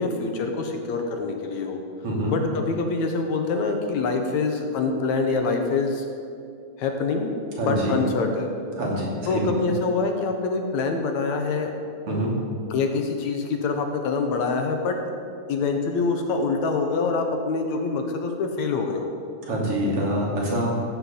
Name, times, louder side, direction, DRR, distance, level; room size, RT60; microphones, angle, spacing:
voice 1, 0.0-1.8 2.3-6.1 6.8-7.3 7.7-8.5 9.3-11.7 12.7-15.0 15.5-19.1, left 4 dB, 65° left, 4 dB, 2.2 m, -25 dB
voice 2, 2.0-2.4 7.6-8.0 8.8-9.5 12.1-12.4 19.4-20.7, right 1 dB, 45° right, -3 dB, 3.5 m, -25 dB
15.0 x 6.7 x 8.4 m, 2.4 s
omnidirectional pair, 3.7 m